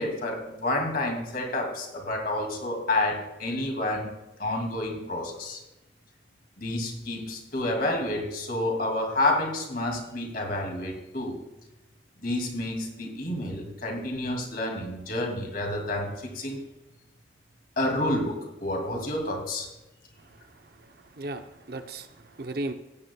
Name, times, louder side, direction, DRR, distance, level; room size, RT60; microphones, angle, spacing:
voice 1, 0.0-4.1 4.4-5.6 6.6-11.4 12.2-16.6 17.8-19.7, left 1 dB, 50° left, 1 dB, 2.4 m, -29 dB
voice 2, 20.2-22.7, right 2 dB, 55° right, 8 dB, 0.7 m, -37 dB
16.5 x 9.3 x 2.3 m, 1.0 s
head